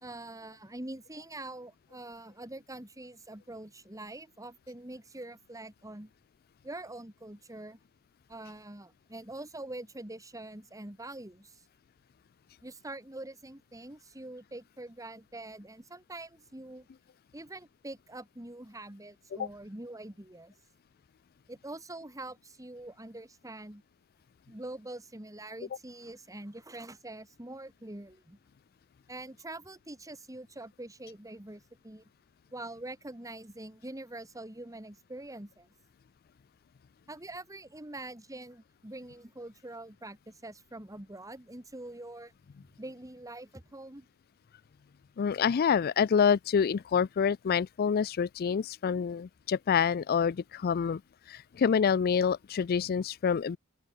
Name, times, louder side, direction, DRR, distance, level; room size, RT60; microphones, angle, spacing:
voice 1, 0.0-6.1 6.6-7.8 8.3-11.6 12.6-16.9 17.3-20.5 21.5-23.8 24.5-28.4 29.1-32.0 32.5-35.7 37.1-42.3 42.8-44.1, right 2 dB, 15° right, 2.1 m, -44 dB
voice 2, 45.2-51.0 51.3-53.6, left 6 dB, 45° left, 0.4 m, -27 dB
open air
head